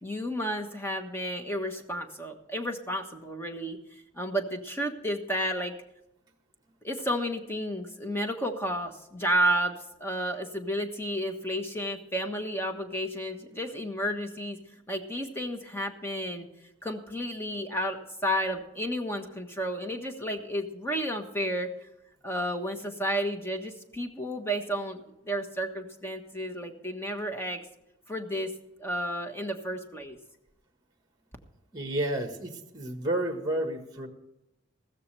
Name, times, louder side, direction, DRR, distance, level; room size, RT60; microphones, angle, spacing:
voice 1, 0.0-3.8 4.1-5.7 6.8-14.6 14.9-16.5 16.8-21.9 22.2-27.6 28.1-28.5 28.8-30.2, equal, 10° left, 4 dB, 1.3 m, -32 dB
voice 2, 31.7-34.1, right 1 dB, 20° right, 5 dB, 1.5 m, -31 dB
15.0 x 13.5 x 3.4 m, 0.87 s
head